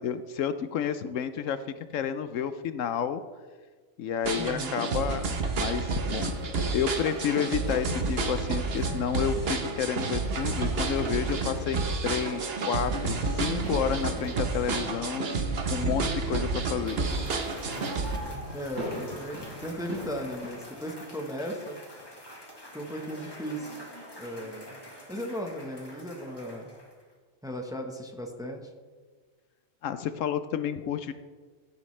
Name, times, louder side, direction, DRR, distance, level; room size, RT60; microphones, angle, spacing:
voice 1, 0.0-1.6 1.9-3.2 4.0-6.4 6.7-15.3 15.7-17.0 29.8-31.1, left 8 dB, 75° left, 11 dB, 0.9 m, -30 dB
sound 1, 4.2-18.2, right 3 dB, 50° right, 1.2 m, -30 dB
voice 2, 4.4-4.8 18.5-21.8 22.7-23.7 24.2-24.8 25.1-26.8 27.4-28.7, equal, 5° right, 3 dB, 1.0 m, -36 dB
sound 2, 6.2-20.5, equal, 75° right, 4.2 m, -42 dB
Cheering / Applause / Crowd, 16.6-27.1, equal, 20° left, 1.8 m, -46 dB
16.0 x 9.2 x 3.3 m, 1.5 s
omnidirectional pair, 1.4 m